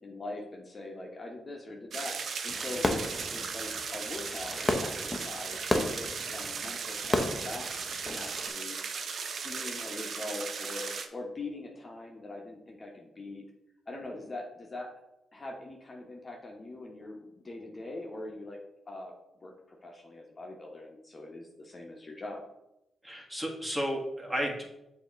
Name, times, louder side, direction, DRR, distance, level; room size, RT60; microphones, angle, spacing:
voice 1, 0.0-2.2 2.4-3.0 3.3-8.8 9.2-13.4 13.9-14.9 15.3-18.6 18.9-19.1 19.4-22.4, left 2 dB, 35° left, 0 dB, 1.0 m, -42 dB
sound 1, 1.9-11.1, right 5 dB, 65° right, 0.6 m, -37 dB
Fireworks, 2.5-8.5, left 1 dB, 15° left, 0.7 m, -33 dB
voice 2, 23.0-24.6, equal, 10° right, -1 dB, 1.5 m, -33 dB
6.8 x 2.9 x 5.0 m, 0.88 s
cardioid pair, 75°, 0 cm